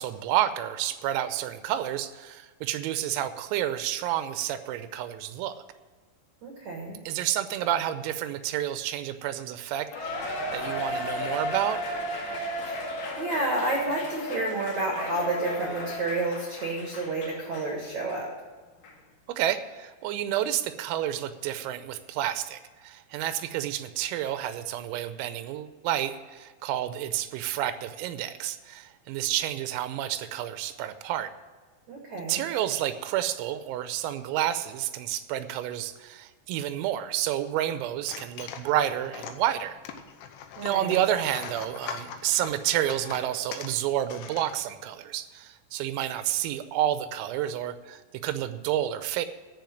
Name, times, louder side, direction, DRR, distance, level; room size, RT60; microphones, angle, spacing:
voice 1, 0.0-5.6 7.1-11.8 19.4-31.3 32.3-39.8 40.6-49.3, right 12 dB, 90° right, 11 dB, 3.5 m, -30 dB
voice 2, 6.4-7.0 12.6-12.8 13.2-18.3 31.9-32.4 40.6-41.0, right 2 dB, 65° right, 0 dB, 1.8 m, -30 dB
Cheering, 9.9-17.7 18.1-18.2 18.8-18.9, equal, 50° left, 3.2 m, -34 dB
sound 1, 38.0-44.9, left 8 dB, 80° left, 3.1 m, -42 dB
14.0 x 5.1 x 9.2 m, 1.4 s
omnidirectional pair, 5.9 m